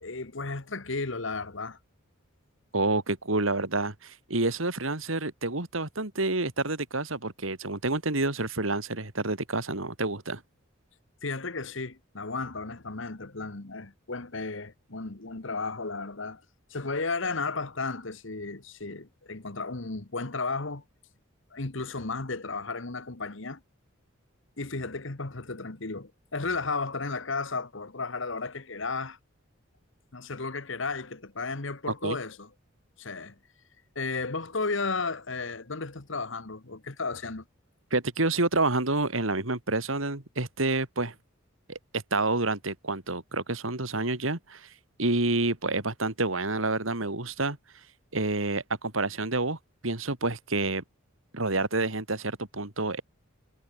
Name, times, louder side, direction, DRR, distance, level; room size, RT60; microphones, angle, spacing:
voice 1, 0.0-1.8 11.2-16.4 16.7-20.8 21.5-23.6 24.6-29.2 30.1-32.5 33.0-33.4 33.9-37.4, left 3 dB, 65° left, 1.5 m, -34 dB
voice 2, 2.7-10.4 31.9-32.2 37.9-41.1 41.7-44.7 45.0-47.6 48.1-49.6 49.8-50.8 51.3-53.0, right 2 dB, 75° right, 3.1 m, -28 dB
head